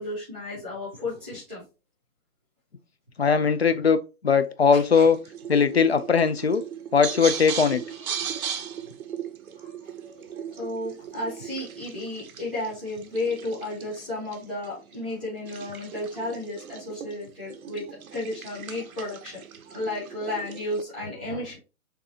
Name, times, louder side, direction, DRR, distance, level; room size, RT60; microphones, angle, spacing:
voice 1, 0.0-1.6 4.7-5.1 8.3-8.6 9.6-10.2 10.5-17.8 18.1-21.6, left 2 dB, 5° left, 0.7 m, -33 dB
voice 2, 3.2-5.2 5.5-6.6 6.9-7.8, left 6 dB, 50° left, 0.4 m, -20 dB
sound 1, 5.1-20.8, right 8 dB, 75° right, 0.7 m, -38 dB
6.5 x 2.7 x 2.8 m
hypercardioid pair, 175°, 43 cm